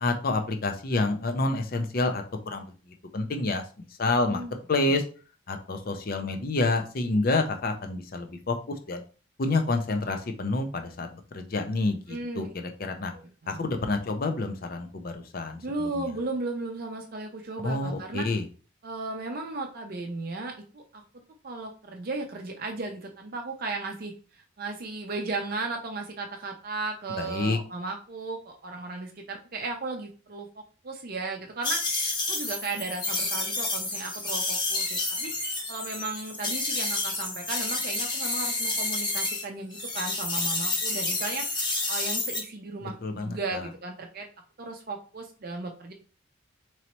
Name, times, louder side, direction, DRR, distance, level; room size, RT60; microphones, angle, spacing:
voice 1, 0.0-3.6 4.0-4.4 4.7-5.0 5.5-9.0 9.4-13.1 13.5-16.1 17.6-18.4 27.1-27.6 42.8-43.7, left 2 dB, 45° left, 5 dB, 0.5 m, -28 dB
voice 2, 4.1-4.5 12.1-12.5 13.1-13.6 15.6-18.3 18.8-21.0 21.4-44.3 44.6-45.9, right 3 dB, 45° right, 3 dB, 0.5 m, -35 dB
sound 1, 31.6-39.4 39.7-42.4, left 2 dB, 20° left, 0.8 m, -29 dB
4.0 x 3.1 x 2.9 m, 0.37 s
head